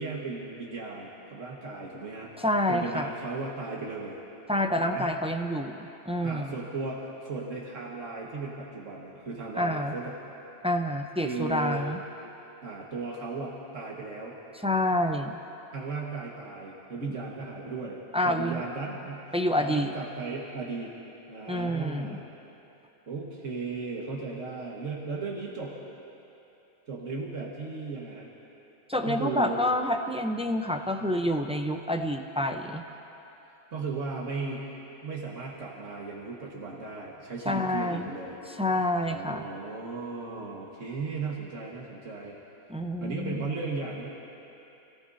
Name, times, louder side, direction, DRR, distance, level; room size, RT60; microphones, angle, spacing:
voice 1, 0.0-2.4 2.7-4.2 4.8-5.1 6.2-10.1 11.2-11.8 12.6-14.4 15.7-19.2 19.6-20.9 21.3-22.3 23.1-25.8 26.9-28.3 29.0-29.6 33.7-34.6 35.0-38.4 39.1-42.4 43.0-44.1, right 4 dB, 90° right, -4 dB, 2.0 m, -36 dB
voice 2, 2.4-3.1 4.5-6.6 9.5-9.9 10.6-12.0 14.6-15.3 18.1-18.6 19.3-19.9 21.5-22.2 28.9-32.8 37.5-38.1 38.5-39.4 42.7-43.4, left 1 dB, 10° right, 5 dB, 0.3 m, -28 dB
29.0 x 17.5 x 2.7 m, 3.0 s
omnidirectional pair, 1.3 m